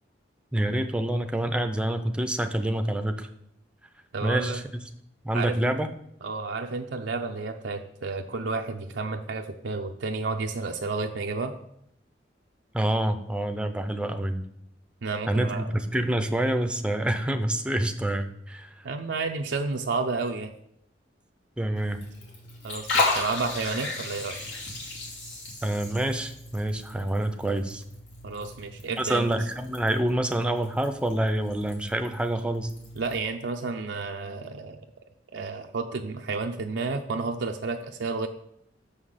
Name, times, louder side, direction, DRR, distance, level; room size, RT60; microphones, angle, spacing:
voice 1, 0.5-3.3 4.2-4.6 5.2-5.9 12.7-14.4 15.3-18.8 21.6-22.0 25.6-27.8 29.0-32.7, right 1 dB, 5° right, 7 dB, 0.6 m, -27 dB
voice 2, 4.1-4.6 5.3-5.8 6.2-11.5 15.0-15.6 18.8-20.5 22.6-24.4 28.2-29.3 33.0-34.8 35.3-38.3, right 4 dB, 85° right, 3 dB, 0.6 m, -31 dB
Liquid, 21.7-33.2, left 3 dB, 85° left, 2.7 m, -35 dB
6.7 x 5.7 x 6.4 m, 0.75 s
head